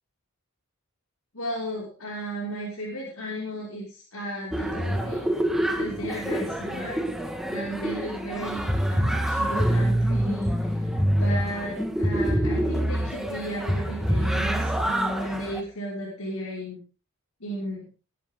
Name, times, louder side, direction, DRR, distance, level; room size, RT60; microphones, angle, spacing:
voice 1, 1.3-5.3 5.7-10.9 11.2-16.8 17.4-17.9, equal, 85° left, -4 dB, 5.8 m, -35 dB
sound 1, 4.5-15.6, equal, ahead, 1.8 m, -26 dB
21.5 x 12.0 x 3.9 m, 0.37 s
head